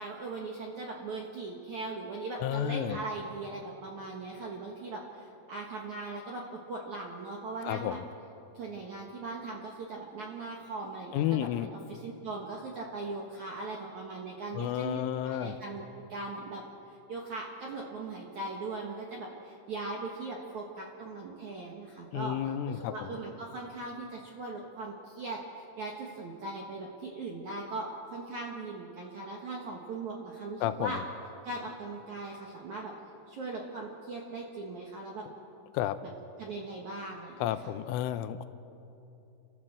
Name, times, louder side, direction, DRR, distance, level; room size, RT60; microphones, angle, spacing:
voice 1, 0.0-8.0 8.5-22.4 22.7-31.0 31.4-32.9 33.3-35.2 36.4-37.8, right 3 dB, 65° right, -1 dB, 1.9 m, -39 dB
voice 2, 2.4-3.0 7.6-8.0 11.1-11.7 14.5-15.6 22.1-23.1 30.6-31.0 35.7-36.0 37.4-38.5, left 11 dB, 85° left, 11 dB, 3.2 m, -31 dB
30.0 x 13.0 x 7.4 m, 2.8 s
omnidirectional pair, 5.8 m